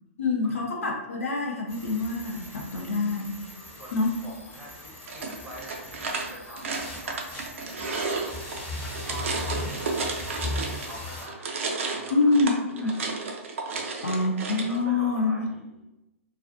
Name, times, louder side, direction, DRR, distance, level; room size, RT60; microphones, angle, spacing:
voice 1, 0.2-3.3 3.9-4.1 12.1-12.9 14.0-15.4, left 3 dB, 70° left, 0 dB, 0.5 m, -26 dB
sound 1, 1.7-11.3, left 2 dB, 30° left, 1.0 m, -39 dB
voice 2, 3.7-7.4 7.7-8.5 8.9-9.9 10.7-11.6 11.8-13.1 13.7-14.1 14.7-15.8, right 1 dB, 5° right, -5 dB, 0.7 m, -45 dB
sound 2, 5.0-11.0 11.3-14.8, right 4 dB, 60° right, 0.4 m, -32 dB
2.4 x 2.4 x 2.4 m, 0.97 s
figure-of-eight pair, 115°, 8 cm